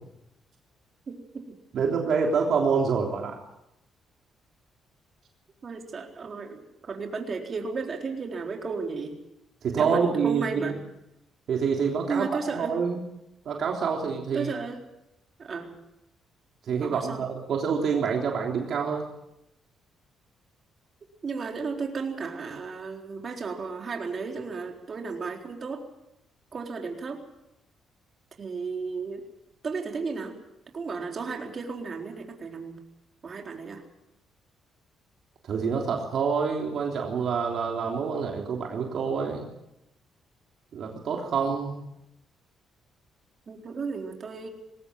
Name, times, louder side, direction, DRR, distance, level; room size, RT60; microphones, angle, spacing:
voice 1, 1.1-1.4 5.6-9.2 9.7-10.8 12.1-12.8 14.3-14.8 15.4-15.7 16.8-17.2 21.2-25.8 26.5-27.2 28.4-29.2 29.6-30.3 30.7-32.8 33.2-33.8 43.5-44.5, right 4 dB, 45° right, 2 dB, 4.1 m, -33 dB
voice 2, 1.7-3.4 9.6-10.8 11.5-13.0 13.5-14.5 16.7-19.1 35.4-39.5 40.7-41.8, right 6 dB, 65° right, 1 dB, 3.4 m, -27 dB
21.0 x 18.0 x 7.7 m, 0.86 s
cardioid pair, 90°, 0 cm